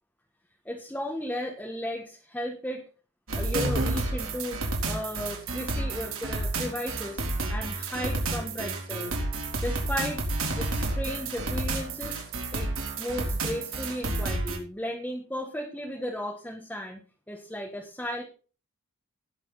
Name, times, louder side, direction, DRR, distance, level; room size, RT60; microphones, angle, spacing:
voice 1, 0.6-2.8 3.3-4.6 4.9-7.2 7.5-9.2 9.6-10.2 10.6-12.2 12.5-12.7 13.0-17.0 17.3-18.2, left 1 dB, 5° left, 0 dB, 1.7 m, -35 dB
sound 1, 3.3-14.6, right 2 dB, 65° right, 3.7 m, -30 dB
18.0 x 7.3 x 4.1 m, 0.36 s
head